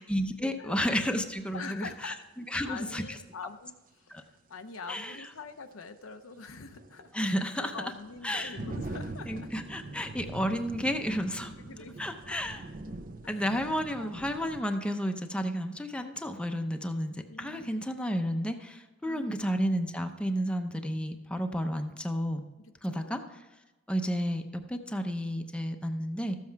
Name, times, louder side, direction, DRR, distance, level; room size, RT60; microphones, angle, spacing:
voice 1, 0.0-3.0 4.1-4.2 4.9-5.2 7.1-7.7 8.2-8.6 9.3-11.5 12.0-12.6 13.3-22.4 22.8-23.2 23.9-26.4, equal, 5° left, 5 dB, 0.7 m, -32 dB
voice 2, 0.6-1.2 1.5-2.2 2.5-7.1 7.6-9.5 11.4-12.4 13.2-13.6 14.0-14.6 17.3-17.8 19.1-19.5 22.6-23.3, left 4 dB, 85° left, 8 dB, 0.7 m, -45 dB
sound 1, 1.6-1.7 4.2-4.3 4.7-4.8 6.4-14.6, right 2 dB, 45° right, 0.7 m, -43 dB
13.5 x 7.6 x 4.6 m, 1.1 s
head